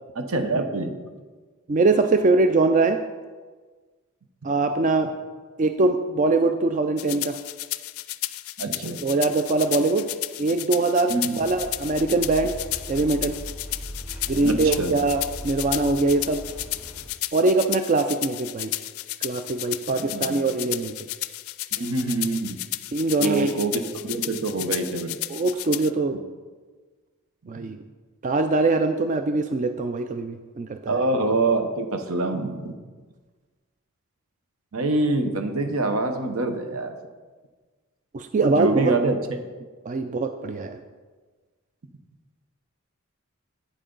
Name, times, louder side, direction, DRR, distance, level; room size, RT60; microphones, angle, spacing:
voice 1, 0.2-1.0 8.6-9.0 11.1-11.4 14.4-15.0 20.0-20.4 21.7-22.6 23.2-25.2 30.9-32.7 34.7-36.9 38.4-39.2, right 2 dB, 80° right, 6 dB, 0.9 m, -25 dB
voice 2, 1.7-3.0 4.4-5.1 5.6-7.4 9.0-10.1 10.4-12.5 12.9-13.4 14.3-16.4 17.3-18.7 19.2-21.0 22.9-23.5 25.3-26.2 27.5-27.8 28.2-31.0 38.1-38.9 39.9-40.8, right 3 dB, 35° right, 8 dB, 0.3 m, -22 dB
sound 1, 7.0-25.9, left 17 dB, 75° left, 0.4 m, -33 dB
sound 2, 11.4-17.1, equal, 10° right, 3.1 m, -38 dB
9.1 x 8.0 x 3.9 m, 1.4 s
head